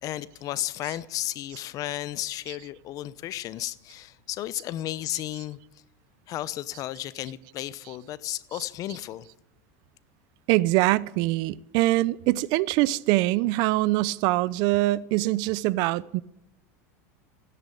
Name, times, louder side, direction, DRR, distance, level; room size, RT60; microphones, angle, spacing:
voice 1, 0.0-5.6 6.3-9.3, left 14 dB, 45° left, 0.8 m, -33 dB
voice 2, 10.5-16.2, right 18 dB, 60° right, 0.6 m, -23 dB
16.5 x 10.5 x 8.5 m
supercardioid pair, 120°, 8 cm